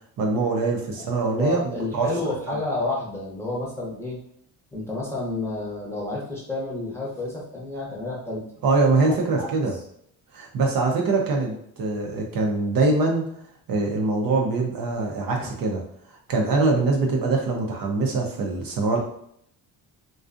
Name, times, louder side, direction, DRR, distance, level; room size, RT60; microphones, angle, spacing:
voice 1, 0.2-2.3 8.6-9.7 10.3-13.3 13.7-15.8 16.3-19.0, right 3 dB, 55° right, 1 dB, 0.6 m, -23 dB
voice 2, 1.0-4.2 4.7-8.4 9.4-9.5 15.4-15.5, left 2 dB, 5° left, -4 dB, 0.8 m, -30 dB
2.5 x 2.3 x 2.4 m, 0.70 s
cardioid pair, 105°, 42 cm